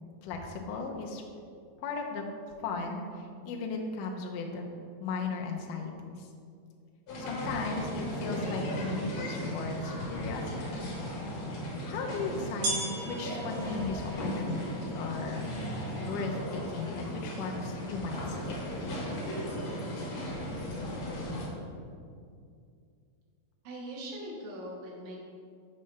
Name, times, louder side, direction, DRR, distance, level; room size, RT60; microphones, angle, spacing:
voice 1, 0.2-1.2 1.8-2.3 2.6-4.7 5.0-6.3 7.2-10.5 10.8-10.9 11.8-15.5 16.0-18.6, left 4 dB, 80° left, 1 dB, 2.2 m, -36 dB
sound 1, 7.1-21.5, equal, 60° left, 2.3 m, -36 dB
sound 2, 12.6-18.2, right 2 dB, 65° right, 2.8 m, -40 dB
voice 2, 23.6-25.2, right 1 dB, 85° right, -2 dB, 2.9 m, -41 dB
6.5 x 6.5 x 3.3 m, 2.3 s
omnidirectional pair, 3.9 m